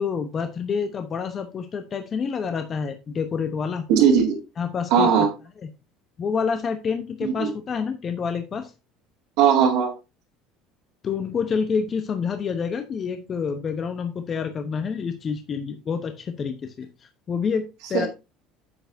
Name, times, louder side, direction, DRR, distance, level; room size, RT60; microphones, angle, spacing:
voice 1, 0.0-3.8 4.6-5.3 5.6-5.7 6.2-8.7 11.0-18.1, left 6 dB, 40° left, 7 dB, 0.9 m, -28 dB
voice 2, 3.9-4.4 4.9-5.3 7.2-7.5 9.4-9.9 17.9-18.1, right 7 dB, 75° right, -2 dB, 2.2 m, -18 dB
9.7 x 7.0 x 2.6 m, 0.27 s
supercardioid pair, 85°, 0 cm